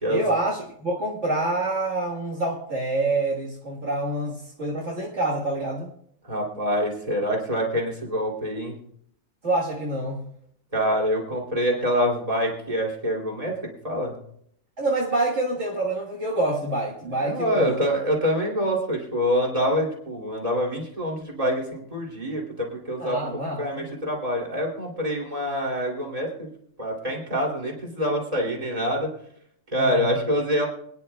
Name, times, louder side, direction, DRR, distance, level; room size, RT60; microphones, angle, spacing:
voice 1, 0.1-5.9 9.4-10.3 14.8-17.8 23.0-23.9 29.8-30.2, right 2 dB, 55° right, -5 dB, 1.9 m, -27 dB
voice 2, 6.2-8.7 10.7-13.6 13.8-14.2 17.2-26.5 26.8-29.1 29.7-30.7, equal, 25° right, -2 dB, 3.1 m, -26 dB
26.0 x 10.0 x 2.3 m, 0.68 s
omnidirectional pair, 1.5 m